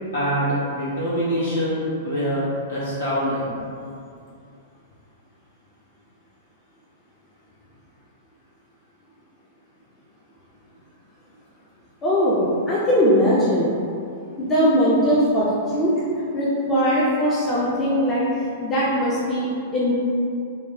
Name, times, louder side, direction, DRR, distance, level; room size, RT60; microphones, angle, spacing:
voice 1, 0.1-2.4 2.7-3.5, equal, 65° left, -9 dB, 1.2 m, -24 dB
voice 2, 12.0-13.7 14.4-15.9 16.3-18.2 18.6-19.9, equal, 20° left, -7 dB, 0.5 m, -20 dB
2.9 x 2.2 x 2.8 m, 2.4 s
figure-of-eight pair, 105°, 0 cm